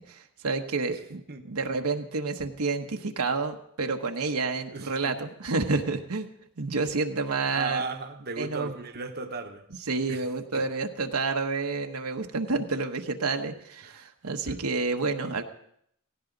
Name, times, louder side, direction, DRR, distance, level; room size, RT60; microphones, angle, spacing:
voice 1, 0.1-6.3 6.6-7.8 8.4-8.7 9.9-15.4, right 3 dB, 75° right, 4 dB, 1.1 m, -29 dB
voice 2, 4.7-5.2 7.5-9.6 10.1-10.2 10.5-10.6 13.8-14.0 14.5-14.6, right 4 dB, 45° right, 6 dB, 1.1 m, -36 dB
17.0 x 16.5 x 4.0 m, 0.71 s
head